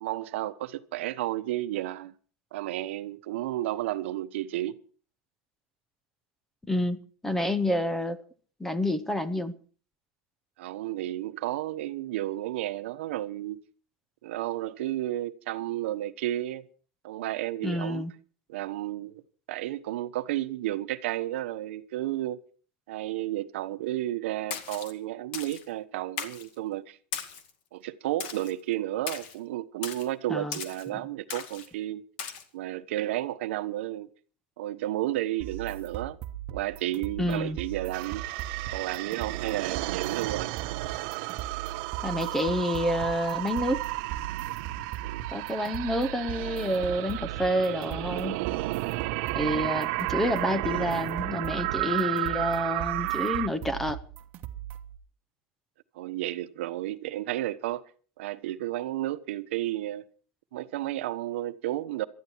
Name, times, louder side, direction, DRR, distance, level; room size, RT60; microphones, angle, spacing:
voice 1, 0.0-2.1 2.5-4.7 10.6-13.6 14.2-16.6 17.0-18.0 18.5-19.2 19.5-22.4 22.9-27.0 27.7-32.0 32.5-34.1 34.6-36.2 36.5-38.2 38.7-40.5 45.0-45.2 49.3-49.8 55.9-57.8 58.2-60.0 60.5-62.1, right 14 dB, 90° right, 1.1 m, -32 dB
voice 2, 6.7-8.2 8.6-9.5 17.6-18.1 30.3-30.6 37.2-37.6 42.0-43.8 45.3-48.4 49.3-54.0, left 1 dB, 5° left, 0.8 m, -28 dB
Splash splatter, 24.5-24.9 25.3-25.6 26.2-26.5 27.1-27.5 28.2-28.5 29.1-29.4 29.8-30.1 30.5-30.9 31.3-31.7 32.2-32.4, left 7 dB, 60° left, 2.2 m, -37 dB
sound 1, 35.4-55.0, right 11 dB, 30° right, 1.3 m, -39 dB
sound 2, 37.9-53.5, right 21 dB, 50° right, 0.7 m, -33 dB
19.5 x 13.0 x 4.6 m
supercardioid pair, 175°, 6 cm